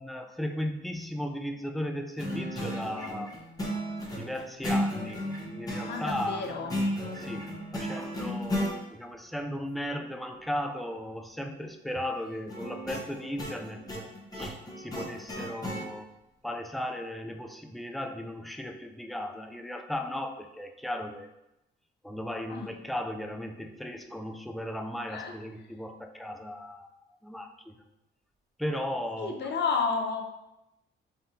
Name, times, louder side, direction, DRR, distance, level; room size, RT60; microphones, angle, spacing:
voice 1, 0.0-3.3 3.6-3.8 4.2-6.5 7.2-7.5 7.7-16.1 16.4-21.3 22.0-27.8 28.6-29.4, left 1 dB, ahead, 5 dB, 0.4 m, -36 dB
sound 1, 2.2-8.8 12.5-15.9, equal, 20° left, 1.2 m, -34 dB
voice 2, 5.8-6.8 22.5-22.7 25.1-25.3 29.2-30.2, left 5 dB, 60° left, 3 dB, 0.7 m, -31 dB
3.8 x 3.5 x 2.8 m, 0.91 s
cardioid pair, 90°, 20 cm